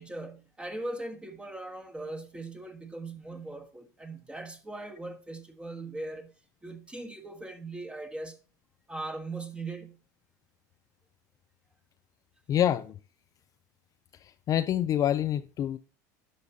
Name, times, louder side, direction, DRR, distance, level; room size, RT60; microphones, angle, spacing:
voice 1, 0.0-6.3 6.6-8.4 8.9-10.0, right 2 dB, 10° right, 1.4 m, -39 dB
voice 2, 12.5-12.9 14.2-15.8, left 11 dB, 35° left, 0.4 m, -27 dB
12.0 x 5.2 x 2.7 m
supercardioid pair, 100°, 10 cm